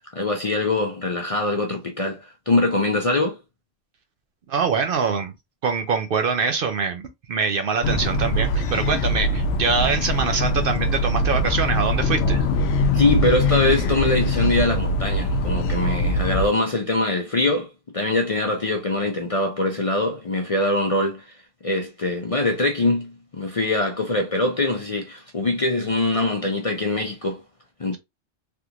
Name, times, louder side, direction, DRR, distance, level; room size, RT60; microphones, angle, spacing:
voice 1, 0.1-3.4 12.9-21.3 21.6-27.4 27.8-28.0, left 2 dB, 40° left, 0.5 m, -23 dB
voice 2, 4.5-5.3 5.6-12.5, right 5 dB, 60° right, 0.6 m, -24 dB
sound 1, 7.8-16.5, left 1 dB, 70° left, 0.8 m, -22 dB
3.4 x 2.4 x 2.8 m
omnidirectional pair, 1.2 m